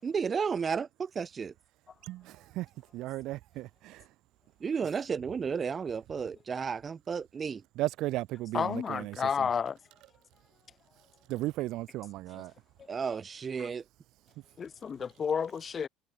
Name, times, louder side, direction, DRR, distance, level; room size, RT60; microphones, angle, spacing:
voice 1, 0.0-1.5 4.6-7.6 12.9-13.8, right 6 dB, 30° right, 6.9 m, -33 dB
voice 2, 2.0-4.1 7.8-9.5 11.3-12.5, right 17 dB, 65° right, 1.4 m, -36 dB
voice 3, 8.5-9.8 12.3-12.4 14.6-15.9, left 6 dB, 30° left, 4.6 m, -31 dB
supercardioid pair, 105°, 0 cm